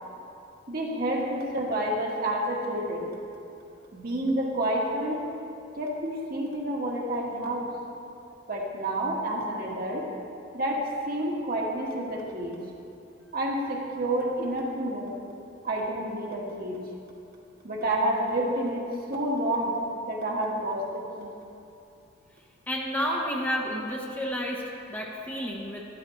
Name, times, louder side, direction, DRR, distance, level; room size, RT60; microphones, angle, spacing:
voice 1, 0.7-3.1 3.9-5.2 5.7-7.7 8.5-10.0 10.5-12.6 13.3-15.2 15.6-16.8 17.6-19.8 20.1-21.3 23.1-23.2, right 1 dB, 50° right, -2 dB, 1.6 m, -29 dB
voice 2, 22.7-24.6 24.9-25.9, equal, 10° left, -2 dB, 0.9 m, -30 dB
12.0 x 11.5 x 3.2 m, 2.7 s
head